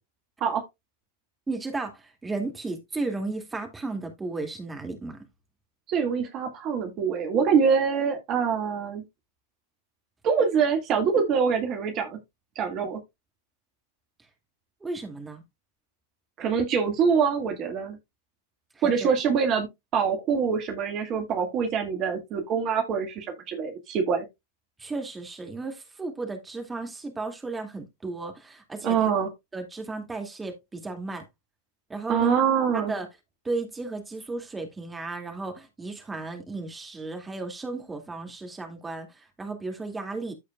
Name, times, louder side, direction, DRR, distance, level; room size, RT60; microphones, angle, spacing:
voice 1, 1.5-5.2 14.8-15.4 18.8-19.1 24.8-29.1 29.5-31.2 31.9-32.3 32.7-33.1 33.4-40.3, right 3 dB, 10° right, 2.4 m, -34 dB
voice 2, 5.9-9.0 10.2-12.2 12.6-13.0 16.4-18.0 18.8-19.7 19.9-24.3 28.8-29.3 32.1-32.9, right 6 dB, 35° right, 2.0 m, -24 dB
14.5 x 4.9 x 2.4 m
figure-of-eight pair, 90°, 0 cm